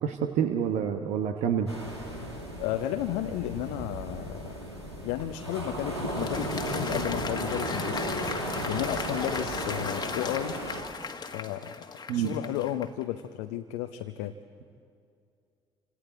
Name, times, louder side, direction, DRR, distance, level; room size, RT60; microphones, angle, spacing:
voice 1, 0.0-1.7 12.1-12.4, right 8 dB, 60° right, 6 dB, 1.2 m, -28 dB
sound 1, 1.7-10.8, right 1 dB, 90° right, 2.1 m, -35 dB
voice 2, 2.6-4.6 5.0-8.3 8.7-10.6 11.3-11.7 12.1-14.3, left 13 dB, 65° left, 7 dB, 0.8 m, -33 dB
Applause, 5.4-13.0, left 5 dB, 30° left, 1.6 m, -37 dB
28.5 x 26.5 x 4.2 m, 2.4 s
figure-of-eight pair, 50°, 14 cm